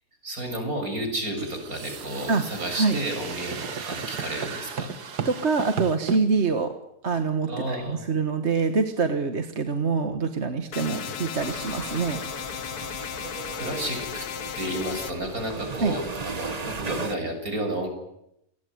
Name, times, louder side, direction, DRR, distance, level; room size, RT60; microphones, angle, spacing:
voice 1, 0.2-4.9 7.5-8.1 10.9-11.1 13.0-13.1 13.5-14.3 14.6-17.9, right 1 dB, 60° right, 5 dB, 7.7 m, -32 dB
sound 1, 1.4-6.2, right 7 dB, 85° right, 2.2 m, -34 dB
voice 2, 5.3-6.7 7.0-12.2 15.8-15.9, right 4 dB, 45° right, 7 dB, 1.8 m, -25 dB
sound 2, 10.7-15.1, left 8 dB, 75° left, 1.7 m, -35 dB
sound 3, 11.4-17.2, right 4 dB, 30° right, 1.1 m, -37 dB
28.5 x 20.5 x 9.6 m, 0.81 s
omnidirectional pair, 1.7 m